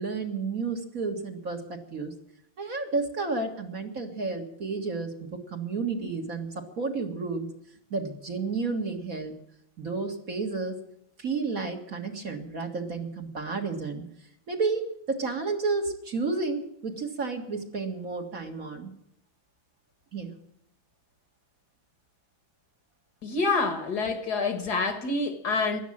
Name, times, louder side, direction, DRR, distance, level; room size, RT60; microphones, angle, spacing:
voice 1, 0.0-2.1 2.6-7.5 7.9-9.3 9.8-10.8 11.2-14.0 14.5-18.9 20.1-20.3, right 4 dB, 45° right, 2 dB, 2.3 m, -31 dB
voice 2, 23.2-25.8, left 3 dB, 55° left, 8 dB, 2.1 m, -27 dB
15.5 x 11.5 x 7.4 m, 0.76 s
omnidirectional pair, 2.1 m